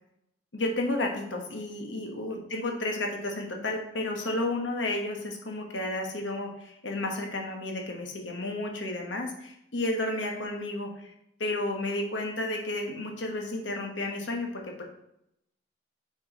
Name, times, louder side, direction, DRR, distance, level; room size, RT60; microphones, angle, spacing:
voice 1, 0.5-11.1 11.4-14.8, left 2 dB, 80° left, 2 dB, 1.2 m, -32 dB
6.6 x 4.5 x 4.1 m, 0.79 s
head